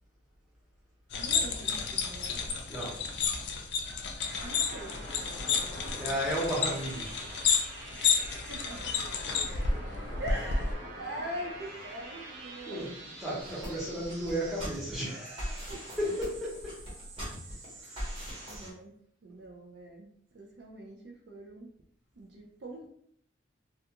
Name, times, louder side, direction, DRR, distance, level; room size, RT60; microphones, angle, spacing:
sound 1, 1.1-10.7, left 5 dB, 60° left, 0.4 m, -31 dB
voice 1, 1.2-2.5 4.4-5.0 7.9-8.9 9.7-9.8 10.2-12.9 15.7-15.8 18.5-18.9 19.2-21.7 22.1-22.9, equal, 60° right, 1 dB, 0.4 m, -43 dB
voice 2, 2.7-3.0 5.9-7.1 12.7-12.9 13.2-15.7 16.0-16.8 17.8-18.4, equal, ahead, -6 dB, 0.8 m, -34 dB
sound 2, 4.2-18.7, right 1 dB, 80° right, 0.7 m, -46 dB
sound 3, 13.4-18.7, equal, 30° right, 0.9 m, -41 dB
2.3 x 2.3 x 2.8 m, 0.66 s
head